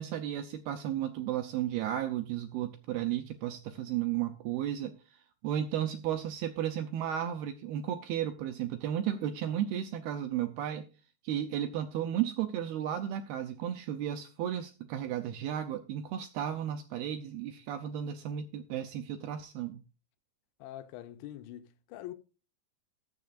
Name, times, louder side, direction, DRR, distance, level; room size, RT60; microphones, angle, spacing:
voice 1, 0.0-4.9 5.4-10.9 11.2-19.8, right 10 dB, 80° right, 2.3 m, -34 dB
voice 2, 20.6-22.1, left 13 dB, 85° left, 3.1 m, -44 dB
20.0 x 7.0 x 2.5 m
omnidirectional pair, 5.2 m